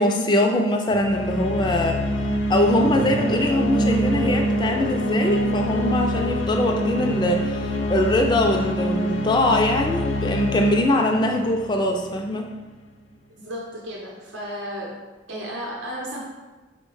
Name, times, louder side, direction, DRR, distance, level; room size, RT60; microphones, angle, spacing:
voice 1, 0.0-2.0 2.5-12.5, left 1 dB, 25° left, 2 dB, 0.3 m, -22 dB
sound 1, 0.9-12.4, equal, 85° left, 0.6 m, -25 dB
voice 2, 13.3-15.0 15.3-16.2, equal, 80° right, -3 dB, 0.7 m, -33 dB
4.7 x 2.2 x 4.6 m, 1.2 s
head